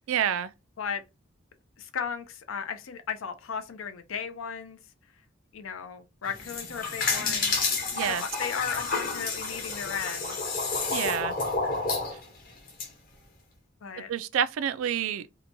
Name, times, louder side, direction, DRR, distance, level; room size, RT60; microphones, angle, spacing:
voice 1, 0.1-0.5 7.9-8.2 10.9-11.3 14.1-15.2, right 9 dB, 80° right, 0.3 m, -28 dB
voice 2, 1.8-4.8 5.5-7.6 8.0-10.4 13.8-14.1, left 6 dB, 80° left, 0.5 m, -35 dB
sound 1, 6.3-12.9, left 4 dB, 45° left, 0.9 m, -30 dB
2.8 x 2.2 x 2.6 m
head